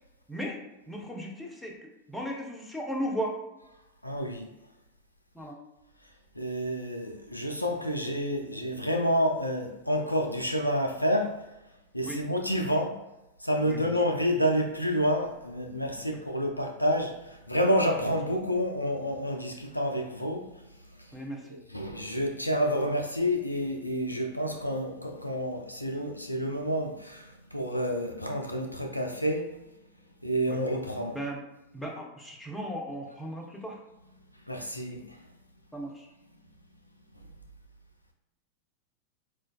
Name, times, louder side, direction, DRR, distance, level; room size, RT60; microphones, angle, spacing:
voice 1, 0.3-0.6 0.9-3.4 5.3-5.6 12.0-12.2 13.6-13.9 15.9-16.2 21.1-21.6 30.5-30.6 31.1-31.4 31.7-33.8 35.7-36.1, equal, 5° left, -1 dB, 0.6 m, -36 dB
voice 2, 4.0-4.5 6.4-11.4 11.9-13.0 13.4-20.4 21.7-29.5 30.2-31.2 34.5-35.2, equal, 85° left, 3 dB, 0.3 m, -29 dB
4.4 x 2.2 x 2.3 m, 0.95 s
figure-of-eight pair, 90°, 0 cm